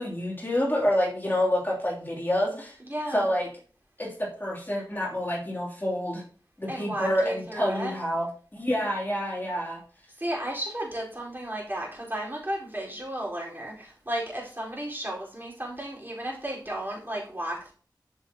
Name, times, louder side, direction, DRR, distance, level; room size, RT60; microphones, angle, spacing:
voice 1, 0.0-2.8 3.1-3.5 4.0-6.2 6.6-9.8, equal, 25° left, -4 dB, 2.9 m, -28 dB
voice 2, 2.8-3.3 6.7-7.9 10.1-17.7, right 1 dB, 25° right, -4 dB, 4.4 m, -34 dB
13.5 x 6.4 x 2.9 m, 0.43 s
wide cardioid pair, 65°, 8 cm